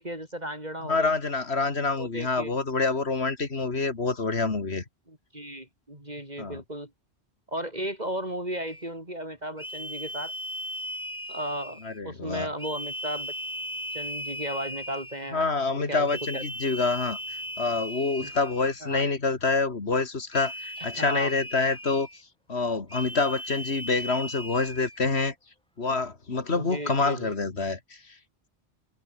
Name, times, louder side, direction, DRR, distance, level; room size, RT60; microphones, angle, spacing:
voice 1, 0.0-1.1 2.0-2.5 5.1-6.9 7.5-10.3 11.3-11.8 12.0-13.3 13.9-15.5 15.7-16.1 16.3-16.4 18.2-18.3 18.8-19.0 20.8-21.3 26.5-27.3, right 1 dB, 40° right, 5.8 m, -35 dB
voice 2, 0.8-4.8 6.4-6.6 11.8-12.5 15.3-17.2 17.6-22.1 22.5-25.3 25.8-28.1, left 3 dB, 80° left, 2.7 m, -27 dB
sound 1, 8.7-8.9 9.6-12.0 12.6-15.3 16.1-18.9 20.3-22.2 22.9-25.0, equal, 5° left, 2.1 m, -37 dB
omnidirectional pair, 1.1 m